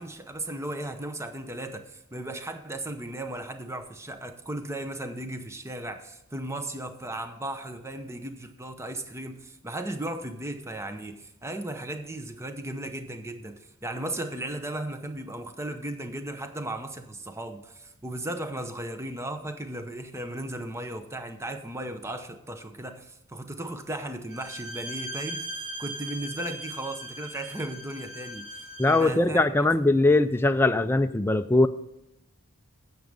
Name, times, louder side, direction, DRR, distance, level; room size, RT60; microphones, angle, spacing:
voice 1, 0.0-29.5, right 1 dB, 15° right, 8 dB, 0.7 m, -36 dB
Bowed string instrument, 24.3-29.1, right 1 dB, 30° right, 3.1 m, -39 dB
voice 2, 28.8-31.7, left 2 dB, 10° left, 8 dB, 0.3 m, -21 dB
9.3 x 7.3 x 5.3 m, 0.86 s
head